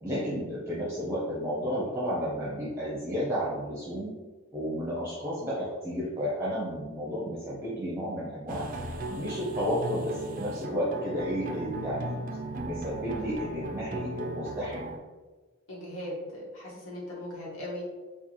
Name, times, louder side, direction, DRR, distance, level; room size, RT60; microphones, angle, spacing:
voice 1, 0.0-4.1 4.5-8.6 9.1-12.1 12.6-14.9, equal, 15° right, -9 dB, 0.8 m, -32 dB
sound 1, 8.5-15.0, right 1 dB, 40° right, 0.3 m, -37 dB
voice 2, 15.7-17.9, left 1 dB, 85° left, -6 dB, 1.3 m, -38 dB
4.4 x 2.4 x 2.9 m, 1.3 s
head